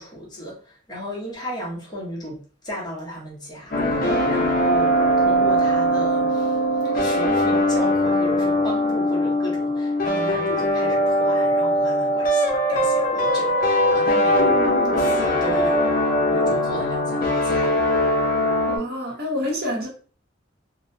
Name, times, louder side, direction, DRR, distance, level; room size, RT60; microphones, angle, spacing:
voice 1, 0.0-6.6 6.9-12.4 12.7-14.6 15.0-17.7, equal, 20° left, 0.9 m, -35 dB
sound 1, 3.7-18.8, equal, 45° left, 0.6 m, -21 dB
voice 2, 18.7-19.9, left 1 dB, 55° right, 0.9 m, -27 dB
2.8 x 2.1 x 2.6 m
head